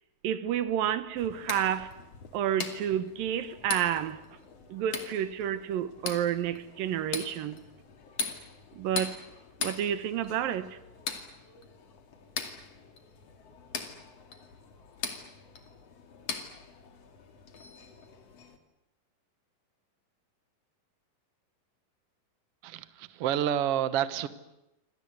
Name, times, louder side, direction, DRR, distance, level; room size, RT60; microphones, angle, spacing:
voice 1, 0.2-1.9 2.3-4.2 4.7-7.6 8.7-9.2 9.6-10.8, right 10 dB, 75° right, 2.8 m, -30 dB
sound 1, 1.2-18.6, left 5 dB, 45° left, 3.2 m, -41 dB
voice 2, 22.6-24.3, right 10 dB, 60° right, 1.6 m, -29 dB
27.5 x 25.5 x 8.0 m
omnidirectional pair, 4.1 m